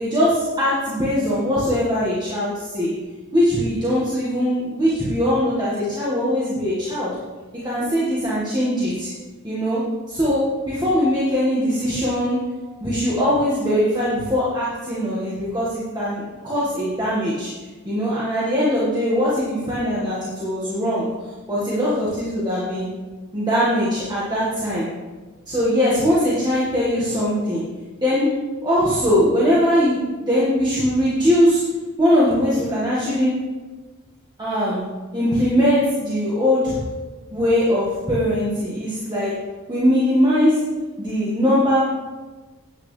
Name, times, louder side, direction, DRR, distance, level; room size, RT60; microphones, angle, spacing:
voice 1, 0.0-2.9 3.3-7.1 7.6-9.1 9.4-9.8 10.1-12.4 12.8-17.5 17.8-21.0 21.5-22.9 23.3-24.9 25.5-27.6 28.0-28.3 28.6-31.6 32.0-33.3 34.4-34.8 35.1-36.8 37.3-39.3 39.7-40.6 41.0-41.8, equal, 20° right, -8 dB, 1.7 m, -21 dB
10.0 x 8.9 x 3.3 m, 1.3 s
head